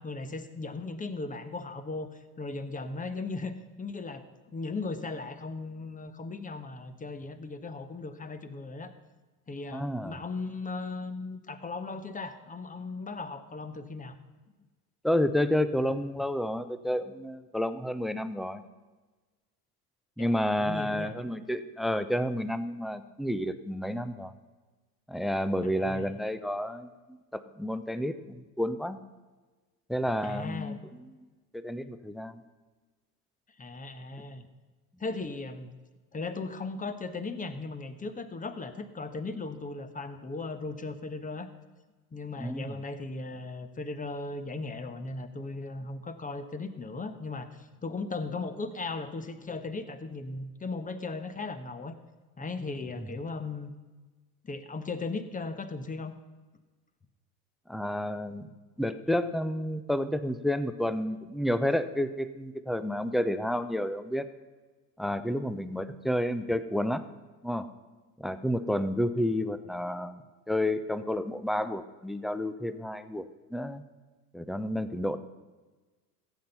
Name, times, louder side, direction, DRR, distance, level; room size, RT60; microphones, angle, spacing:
voice 1, 0.0-8.9 9.5-14.2 20.2-20.3 20.6-21.1 25.6-26.1 30.2-30.8 33.6-34.5 35.0-35.7 36.1-41.5 42.1-51.9 52.4-53.7 54.4-56.1, left 3 dB, 15° left, 10 dB, 1.1 m, -37 dB
voice 2, 9.7-10.2 15.0-18.6 20.2-24.3 25.1-29.0 29.9-31.3 31.5-32.4 42.4-42.8 53.0-53.1 57.7-58.5 58.8-64.3 65.0-67.0 67.4-67.7 68.2-73.8 74.3-75.2, left 1 dB, ahead, 12 dB, 0.6 m, -30 dB
15.5 x 8.0 x 5.5 m, 1.3 s
hypercardioid pair, 75°, 48 cm